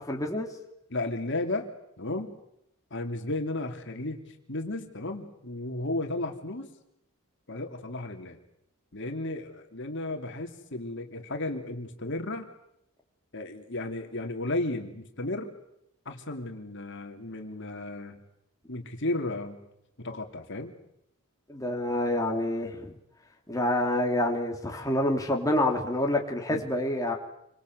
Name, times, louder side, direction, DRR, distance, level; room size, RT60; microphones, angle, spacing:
voice 1, 0.1-0.5 21.5-22.9 23.5-27.2, left 1 dB, 15° left, 1 dB, 3.0 m, -27 dB
voice 2, 0.9-1.7 2.0-2.3 2.9-6.7 7.5-8.4 8.9-12.5 13.3-15.5 16.0-18.2 18.7-19.6 20.0-20.7 26.5-26.7, left 2 dB, 55° left, 4 dB, 3.1 m, -34 dB
28.5 x 24.5 x 8.1 m, 0.77 s
head